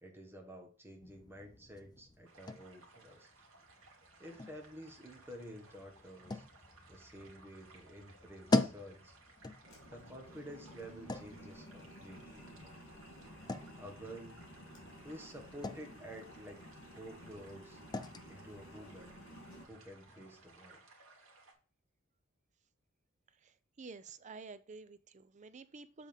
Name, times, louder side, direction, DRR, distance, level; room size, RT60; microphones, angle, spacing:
voice 1, 0.0-3.3 4.2-6.4 6.9-9.1 9.9-12.5 13.8-14.4 15.0-16.6 16.9-17.8 18.3-19.1 19.7-20.8, equal, 10° right, 1.3 m, -51 dB
sound 1, 1.0-20.6, left 2 dB, 20° left, 0.5 m, -43 dB
sound 2, 2.2-21.5, right 3 dB, 70° right, 1.8 m, -61 dB
sound 3, 9.6-19.7, equal, 60° left, 3.1 m, -54 dB
voice 2, 23.4-26.1, right 4 dB, 35° right, 0.5 m, -51 dB
7.4 x 3.8 x 5.1 m
head